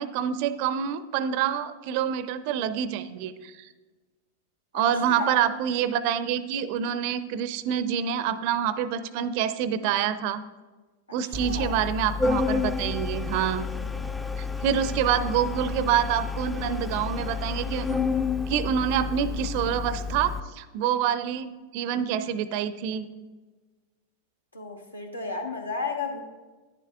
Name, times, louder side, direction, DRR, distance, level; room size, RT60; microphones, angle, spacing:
voice 1, 0.0-3.7 4.7-10.4 11.1-13.7 14.6-17.9 18.5-23.1, right 9 dB, 45° right, 14 dB, 0.5 m, -27 dB
voice 2, 4.7-5.3 11.1-11.7 24.5-26.2, left 4 dB, 80° left, 3 dB, 1.1 m, -33 dB
Organ, 11.3-20.4, left 4 dB, 5° left, 0.4 m, -30 dB
10.5 x 10.5 x 2.4 m, 1.3 s
figure-of-eight pair, 90°, 0 cm